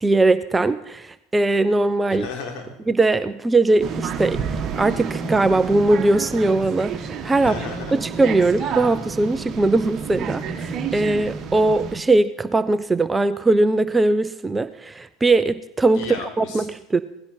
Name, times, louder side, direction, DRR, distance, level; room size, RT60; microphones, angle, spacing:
voice 1, 0.0-2.3 2.9-7.6 7.9-16.1 16.4-17.0, right 2 dB, 15° right, 13 dB, 0.6 m, -20 dB
voice 2, 2.1-2.8 7.4-8.0 15.9-16.7, left 5 dB, 55° left, 2 dB, 3.6 m, -34 dB
sound 1, 3.8-12.0, right 6 dB, 35° right, 1.5 m, -30 dB
19.0 x 16.0 x 4.5 m, 0.86 s
figure-of-eight pair, 75°, 0 cm